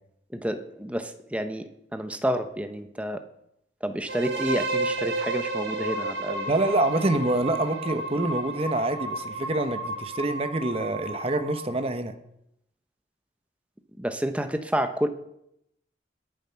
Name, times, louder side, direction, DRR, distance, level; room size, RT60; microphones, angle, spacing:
voice 1, 0.3-3.2 3.8-6.5 14.0-15.1, equal, 5° right, 8 dB, 0.9 m, -29 dB
sound 1, 4.1-11.9, right 2 dB, 75° right, 2.0 m, -32 dB
voice 2, 6.5-12.1, right 2 dB, 35° right, 8 dB, 1.0 m, -26 dB
21.5 x 7.2 x 5.8 m, 0.78 s
head